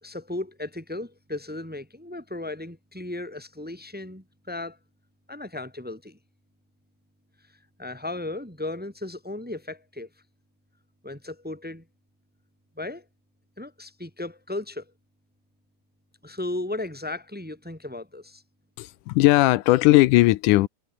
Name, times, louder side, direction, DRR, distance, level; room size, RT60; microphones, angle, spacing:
voice 1, 0.0-4.8 5.3-6.2 7.8-10.1 11.0-11.8 12.8-13.0 13.6-14.9 16.2-18.4, left 2 dB, 5° right, 2.0 m, -35 dB
voice 2, 18.8-20.7, left 18 dB, 85° left, 2.1 m, -18 dB
omnidirectional pair, 3.6 m